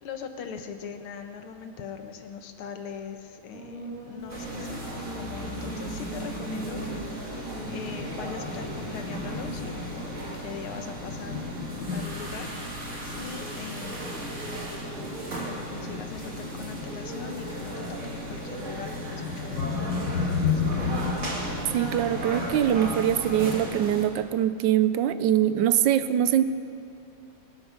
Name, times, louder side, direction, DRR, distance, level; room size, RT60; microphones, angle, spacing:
voice 1, 0.0-14.3 15.3-20.6, left 7 dB, 80° left, 6 dB, 1.9 m, -41 dB
sound 1, 3.5-18.4, right 1 dB, 20° right, 4.9 m, -42 dB
Thunder, 4.2-23.6, left 5 dB, 60° left, 1.6 m, -36 dB
sound 2, 4.3-24.1, right 1 dB, 35° right, 2.3 m, -36 dB
voice 2, 21.7-26.4, right 11 dB, 75° right, 12 dB, 1.1 m, -23 dB
22.5 x 12.0 x 5.1 m, 2.5 s
omnidirectional pair, 2.4 m